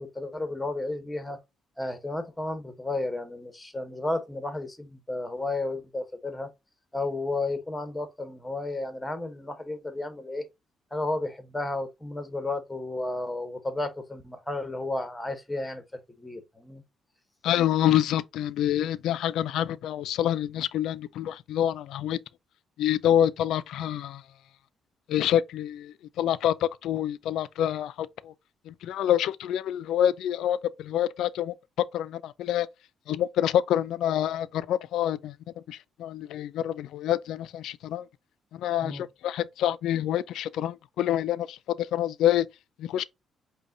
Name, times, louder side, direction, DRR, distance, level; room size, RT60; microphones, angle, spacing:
voice 1, 0.0-1.4 1.8-6.5 6.9-10.5 10.9-15.8 16.2-16.8 38.8-39.0, left 2 dB, 10° left, 1.0 m, -32 dB
voice 2, 17.4-22.2 22.8-24.2 25.1-28.3 28.7-31.5 31.9-32.7 33.1-35.3 35.7-38.1 38.5-41.6 41.9-42.5 42.8-43.0, left 11 dB, 80° left, 0.3 m, -27 dB
5.2 x 2.2 x 3.8 m
cardioid pair, 90°, 0 cm